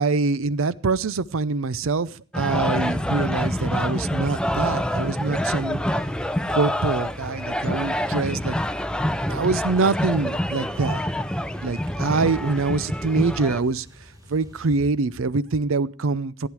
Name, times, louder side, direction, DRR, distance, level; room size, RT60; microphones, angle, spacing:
voice 1, 0.0-5.8 6.5-8.5 9.3-11.0 11.6-13.9 14.3-16.5, right 4 dB, 70° right, 19 dB, 0.6 m, -24 dB
sound 1, 2.3-13.6, equal, 5° left, 0.5 m, -26 dB
sound 2, 3.1-14.9, left 1 dB, 20° right, 3.0 m, -44 dB
15.0 x 10.0 x 4.8 m, 0.41 s
head